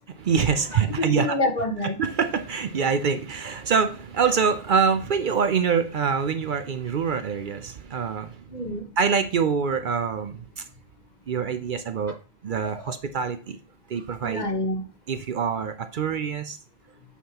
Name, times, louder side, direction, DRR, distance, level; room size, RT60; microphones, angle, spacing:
voice 1, 0.1-1.4 2.0-8.4 9.0-10.7 11.3-12.1 12.4-13.6 13.9-14.5 15.1-16.6, right 6 dB, 60° right, 0.7 m, -25 dB
voice 2, 1.0-2.0 8.5-8.9 12.6-12.8 14.2-14.8, left 2 dB, 45° left, 1.3 m, -27 dB
8.3 x 5.6 x 2.9 m
omnidirectional pair, 1.0 m